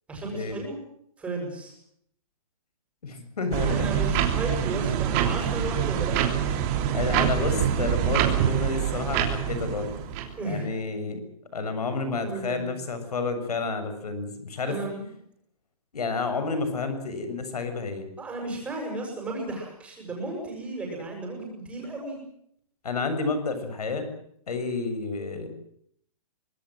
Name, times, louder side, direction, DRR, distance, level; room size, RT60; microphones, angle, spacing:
voice 1, 0.1-0.8 1.2-1.7 3.7-6.2 10.4-10.7 12.2-12.7 14.7-15.1 18.2-22.2, right 2 dB, 5° right, 1 dB, 7.2 m, -34 dB
voice 2, 3.0-4.0 4.7-5.1 6.9-9.9 10.4-11.2 11.5-14.8 15.9-18.1 22.8-24.1 24.5-25.5, left 3 dB, 85° left, 9 dB, 7.2 m, -30 dB
sound 1, 3.5-10.3, right 9 dB, 25° right, 3.2 m, -25 dB
25.5 x 20.5 x 7.8 m, 0.68 s
hypercardioid pair, 170°, 19 cm